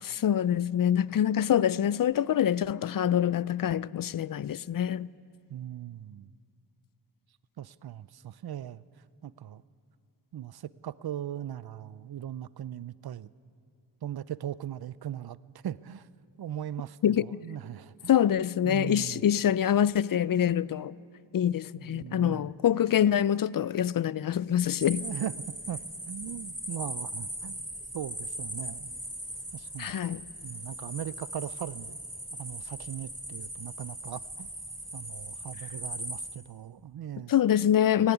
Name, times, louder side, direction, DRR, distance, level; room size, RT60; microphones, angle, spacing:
voice 1, 0.0-5.1 17.0-17.3 18.1-20.9 21.3-25.1 29.8-30.2 37.3-38.1, left 10 dB, 45° left, 0.4 m, -25 dB
voice 2, 5.5-6.3 7.6-8.8 9.2-9.6 10.3-13.3 14.0-15.4 15.6-16.1 16.4-18.1 18.6-19.3 21.8-22.5 24.9-25.3 25.7-25.8 26.1-27.7 27.9-28.9 29.5-29.9 30.4-32.0 32.3-34.5 34.9-37.3, right 11 dB, 50° right, 0.6 m, -39 dB
sound 1, 24.8-36.4, right 1 dB, 10° right, 2.9 m, -39 dB
17.5 x 15.5 x 9.9 m
cardioid pair, 65°, 48 cm